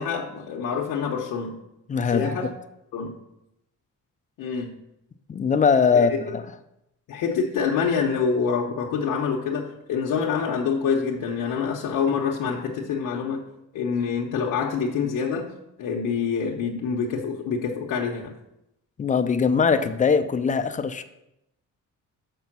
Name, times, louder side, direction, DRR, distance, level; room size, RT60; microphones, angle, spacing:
voice 1, 0.0-1.6 2.0-2.5 2.9-3.1 4.4-4.7 5.9-6.3 7.1-13.5 13.7-15.5 15.8-18.3, left 6 dB, 80° left, -2 dB, 0.9 m, -26 dB
voice 2, 1.9-2.3 5.3-6.4 19.0-21.0, left 5 dB, 25° left, 9 dB, 0.4 m, -21 dB
6.8 x 5.5 x 5.9 m, 0.84 s
cardioid pair, 165°, 32 cm